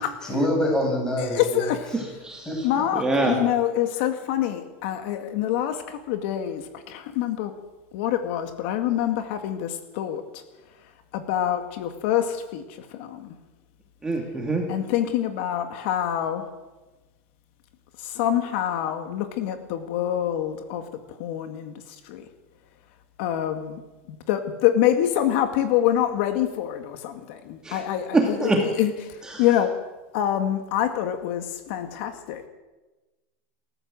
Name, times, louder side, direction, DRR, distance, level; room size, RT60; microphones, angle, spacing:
voice 1, 0.2-1.7 1.9-2.0 2.5-2.8, equal, 10° left, 0 dB, 7.6 m, -26 dB
voice 2, 1.3-1.9 2.6-7.5 7.9-10.2 11.1-12.6 12.9-13.3 14.7-16.4 18.0-20.8 21.2-21.7 22.1-22.3 23.2-23.8 24.3-28.5 28.8-28.9 29.4-29.7 30.1-32.4, left 11 dB, 60° left, 7 dB, 2.0 m, -25 dB
voice 3, 1.9-2.7 2.9-3.5 14.0-14.6 27.6-27.9 28.1-28.7 29.2-29.5, right 2 dB, 10° right, 0 dB, 2.7 m, -25 dB
28.5 x 14.0 x 7.8 m, 1.2 s
supercardioid pair, 155°, 7 cm